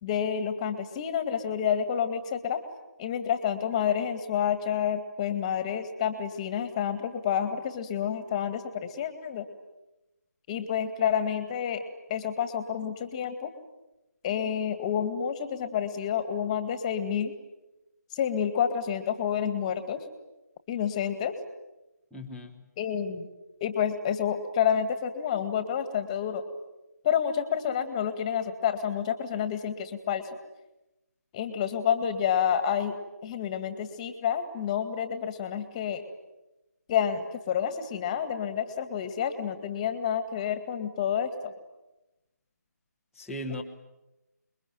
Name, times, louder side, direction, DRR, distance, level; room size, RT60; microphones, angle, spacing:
voice 1, 0.0-2.6 3.0-9.4 10.5-11.8 12.1-13.5 14.2-17.3 18.1-20.0 20.7-21.3 22.8-23.3 23.6-26.4 27.0-30.2 31.3-33.0 33.2-36.0 36.9-41.5, left 8 dB, 20° left, 11 dB, 2.0 m, -29 dB
voice 2, 22.1-22.6 43.1-43.6, left 1 dB, ahead, -9 dB, 1.1 m, -37 dB
28.0 x 22.0 x 9.3 m, 0.99 s
figure-of-eight pair, 160°, 9 cm